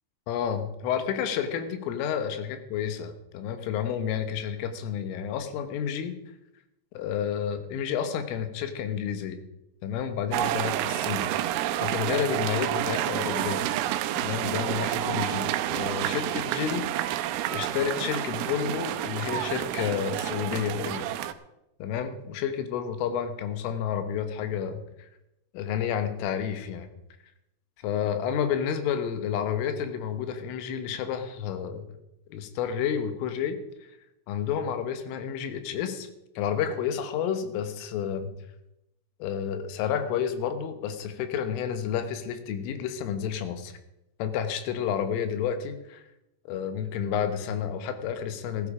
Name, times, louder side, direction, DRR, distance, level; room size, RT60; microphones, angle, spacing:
voice 1, 0.3-6.2 7.0-9.4 9.8-11.2 11.8-13.7 14.2-16.9 17.5-21.1 21.8-25.1 25.5-26.9 27.8-31.9 32.3-33.6 34.3-36.1 36.4-38.3 39.2-43.7 44.2-46.0 46.5-48.7, left 8 dB, 75° left, 9 dB, 3.7 m, -30 dB
sound 1, 10.3-21.3, right 13 dB, 85° right, 3.3 m, -29 dB
15.0 x 12.0 x 4.9 m, 0.88 s
omnidirectional pair, 5.9 m